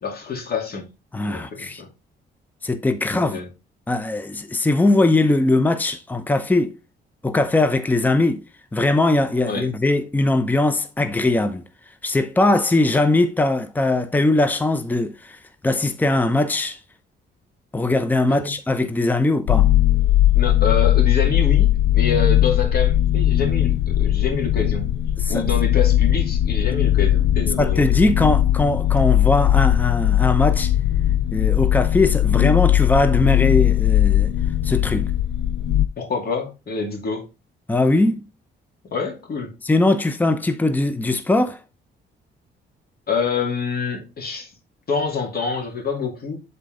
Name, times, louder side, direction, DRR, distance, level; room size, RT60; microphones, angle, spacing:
voice 1, 0.0-0.8 1.2-1.9 3.1-3.5 9.5-9.7 18.3-18.5 20.3-24.9 25.3-28.2 36.0-37.2 38.9-39.5 43.1-44.5 44.9-46.4, left 5 dB, 50° left, 2.3 m, -26 dB
voice 2, 1.1-1.8 2.6-3.4 3.9-6.8 7.2-8.4 8.7-11.6 12.0-15.4 15.6-16.8 17.7-19.7 25.2-25.4 27.6-30.7 31.3-34.3 34.6-35.1 37.7-38.3 39.6-41.6, left 2 dB, 10° left, 0.7 m, -20 dB
sound 1, 19.5-35.9, left 12 dB, 75° left, 0.5 m, -18 dB
7.5 x 4.0 x 3.8 m
cardioid pair, 90°, 20 cm